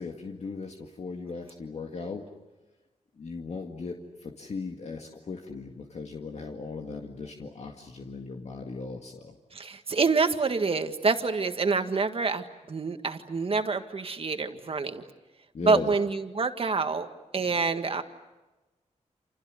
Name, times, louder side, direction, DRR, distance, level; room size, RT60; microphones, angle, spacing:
voice 1, 0.0-2.3 3.2-9.4 15.5-15.9, left 4 dB, 60° left, 2 dB, 2.0 m, -37 dB
voice 2, 9.5-15.0 15.6-17.1 17.3-18.0, right 4 dB, 50° right, 7 dB, 1.8 m, -27 dB
29.5 x 28.0 x 6.6 m, 1.1 s
wide cardioid pair, 125°, 12 cm